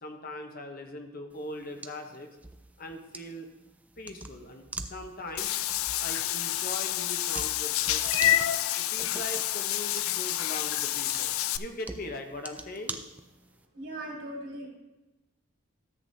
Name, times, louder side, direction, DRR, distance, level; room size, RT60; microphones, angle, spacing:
voice 1, 0.0-2.3 2.8-3.5 4.0-5.6 6.0-13.0, left 1 dB, 45° left, 4 dB, 0.9 m, -41 dB
sound 1, 1.3-13.6, right 2 dB, 5° right, 0.3 m, -45 dB
Meow / Water / Bathtub (filling or washing), 5.4-11.6, left 13 dB, 90° left, 0.4 m, -28 dB
voice 2, 13.7-14.7, right 1 dB, 70° right, -3 dB, 3.0 m, -38 dB
13.5 x 8.0 x 2.7 m, 1.0 s
head